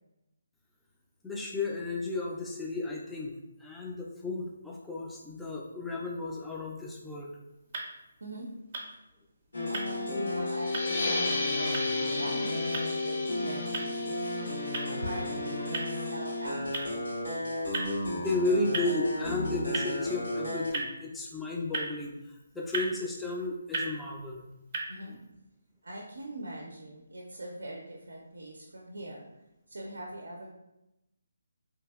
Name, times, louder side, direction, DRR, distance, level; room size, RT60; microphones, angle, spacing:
voice 1, 1.2-3.3 3.6-7.3 18.1-24.4 25.1-25.2, left 2 dB, 5° left, -3 dB, 0.3 m, -33 dB
sound 1, 7.4-24.8, right 3 dB, 40° right, 0.6 m, -41 dB
voice 2, 8.2-8.5 9.7-14.5 15.0-17.1 24.9-25.2 25.8-29.2 29.7-30.5, right 1 dB, 90° right, -1 dB, 0.4 m, -41 dB
sound 2, 9.5-20.7, left 2 dB, 85° left, 1.2 m, -33 dB
sound 3, 10.5-15.8, left 2 dB, 40° left, 0.7 m, -36 dB
2.8 x 2.6 x 2.3 m, 0.91 s
hypercardioid pair, 160°, 0 cm